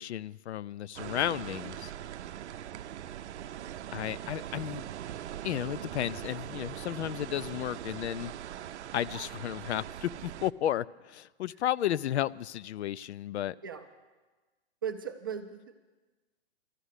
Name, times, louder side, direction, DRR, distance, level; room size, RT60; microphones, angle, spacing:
voice 1, 0.0-1.9 3.9-4.8 5.4-8.3 8.9-13.6, left 11 dB, 75° left, 19 dB, 0.5 m, -33 dB
sound 1, 1.0-10.5, right 11 dB, 80° right, 0.6 m, -41 dB
voice 2, 14.8-15.8, right 7 dB, 20° right, 6 dB, 0.4 m, -38 dB
13.0 x 10.0 x 8.2 m, 1.2 s
hypercardioid pair, 165°, 34 cm